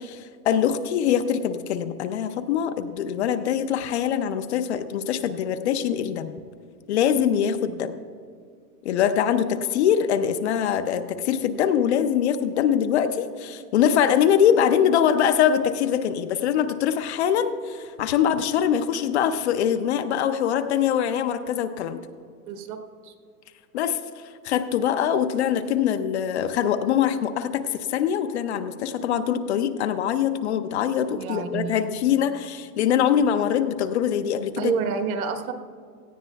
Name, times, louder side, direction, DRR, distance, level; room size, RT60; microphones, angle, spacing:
voice 1, 0.0-6.3 6.9-7.9 8.8-22.0 23.7-34.7, left 9 dB, 45° left, 9 dB, 0.6 m, -23 dB
voice 2, 22.5-22.8 23.0-23.1 31.1-31.8 34.6-35.5, right 7 dB, 60° right, 6 dB, 1.3 m, -29 dB
17.5 x 14.0 x 2.3 m, 2.2 s
supercardioid pair, 155°, 48 cm